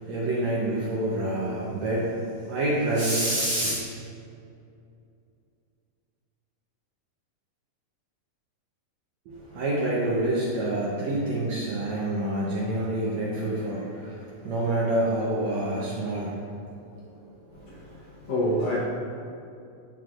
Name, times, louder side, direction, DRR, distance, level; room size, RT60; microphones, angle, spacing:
voice 1, 0.0-3.8 9.3-16.4 17.2-17.3, right 1 dB, 70° right, -6 dB, 1.7 m, -27 dB
voice 2, 17.5-18.8, equal, 70° left, -8 dB, 1.5 m, -28 dB
12.0 x 5.1 x 2.5 m, 2.5 s
omnidirectional pair, 4.0 m